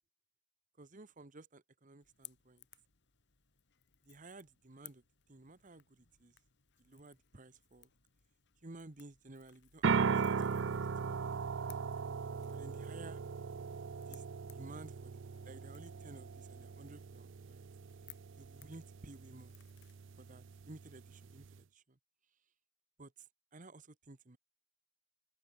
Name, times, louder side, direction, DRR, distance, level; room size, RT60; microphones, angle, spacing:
voice 1, 0.8-2.6 4.0-5.0 5.3-6.3 6.8-7.9 8.6-11.6 12.5-13.2 14.1-14.2 14.5-17.6 18.4-19.5 20.1-22.0 23.0-23.1 23.5-24.4, right 2 dB, 35° right, 1.1 m, -55 dB
Crackle / Crack, 2.0-20.3, left 15 dB, 55° left, 2.5 m, -63 dB
sound 1, 9.8-21.6, right 5 dB, 55° right, 0.5 m, -38 dB
open air
head